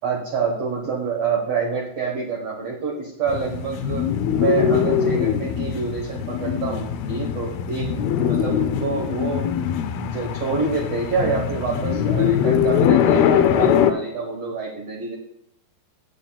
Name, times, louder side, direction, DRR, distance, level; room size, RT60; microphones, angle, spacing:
voice 1, 0.0-4.1 4.4-9.7 9.9-15.2, right 5 dB, 60° right, -2 dB, 1.7 m, -27 dB
sound 1, 3.3-13.9, left 8 dB, 80° left, 2.4 m, -22 dB
18.5 x 7.9 x 2.3 m, 0.79 s
omnidirectional pair, 4.5 m